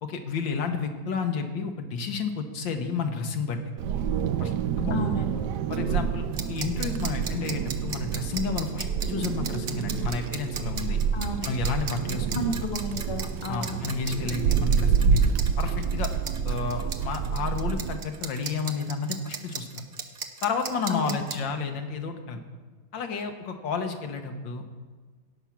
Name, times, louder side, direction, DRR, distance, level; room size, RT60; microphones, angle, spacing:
voice 1, 0.0-3.6 4.4-4.5 4.8-5.0 5.7-11.0 11.4-12.5 13.5-15.2 15.6-16.1 16.4-19.7 20.4-22.4 22.9-24.6, left 5 dB, 85° left, 5 dB, 1.8 m, -31 dB
Wind, 3.8-18.0, right 7 dB, 70° right, 1.1 m, -28 dB
voice 2, 4.9-5.4 11.1-11.5 12.3-13.8 20.9-21.4, left 1 dB, 25° left, 3 dB, 0.7 m, -32 dB
sound 1, 6.3-21.3, right 6 dB, 55° right, 0.6 m, -36 dB
17.5 x 6.2 x 5.9 m, 1.4 s
omnidirectional pair, 2.0 m